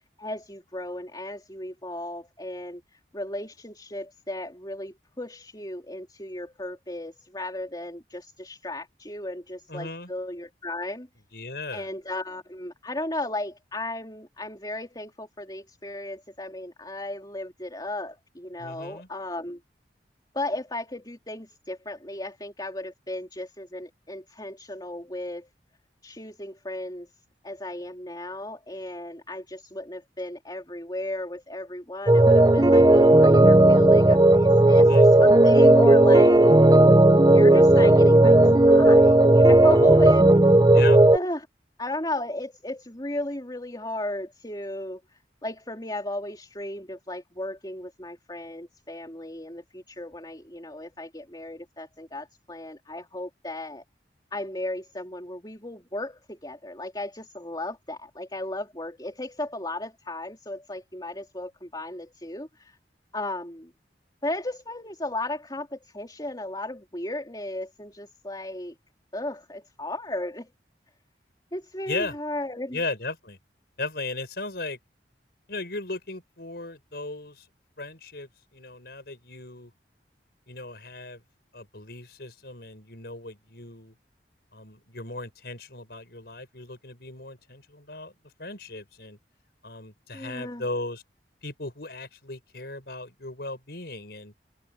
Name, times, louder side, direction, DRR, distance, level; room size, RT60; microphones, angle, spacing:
voice 1, 0.0-11.1 11.7-19.6 20.3-25.5 26.0-27.1 27.4-36.5 37.2-38.4 38.7-40.5 41.1-41.5 41.8-53.8 54.3-62.8 63.1-63.7 64.2-68.7 69.1-70.5 71.5-72.8 90.1-90.7, left 1 dB, 25° left, 4.0 m, -35 dB
voice 2, 9.7-10.1 11.3-11.9 18.6-19.1 34.7-35.1 40.7-41.0 71.9-72.1 72.7-73.4 73.8-74.8 75.5-77.5 77.8-79.7 80.5-81.2 81.5-83.9 84.5-88.1 88.4-89.2 89.6-91.0 91.4-94.3, left 2 dB, 60° left, 5.6 m, -36 dB
sound 1, 32.1-41.2, right 1 dB, 20° right, 0.7 m, -15 dB
open air
head